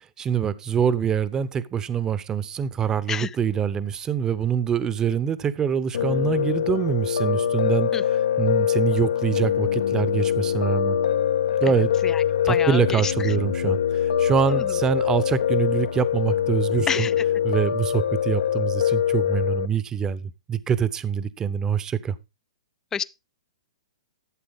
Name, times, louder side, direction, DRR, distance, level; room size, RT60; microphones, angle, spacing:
voice 1, 0.2-8.0 8.4-11.0 11.6-11.9 12.4-17.1 17.4-22.2, right 8 dB, 20° right, 0.8 m, -25 dB
Piano, 5.9-19.7, left 9 dB, 70° left, 0.8 m, -24 dB
voice 2, 11.8-13.3 14.5-14.8 16.9-17.1 22.9-23.0, left 7 dB, 15° left, 0.4 m, -30 dB
12.5 x 7.6 x 3.6 m
hypercardioid pair, 125°, 3 cm